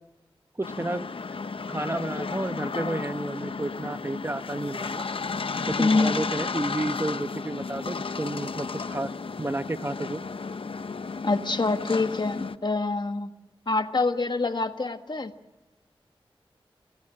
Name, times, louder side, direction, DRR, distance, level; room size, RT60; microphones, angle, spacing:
sound 1, 0.6-12.6, left 4 dB, 70° left, 0.8 m, -33 dB
voice 1, 0.6-1.1 1.7-5.0 5.7-9.1 9.4-10.2, right 2 dB, 25° right, 11 dB, 0.9 m, -31 dB
voice 2, 5.8-6.2 11.2-13.3 13.7-15.3, left 3 dB, 50° left, 8 dB, 1.6 m, -25 dB
28.5 x 18.0 x 7.6 m, 1.1 s
wide cardioid pair, 60°, 10 cm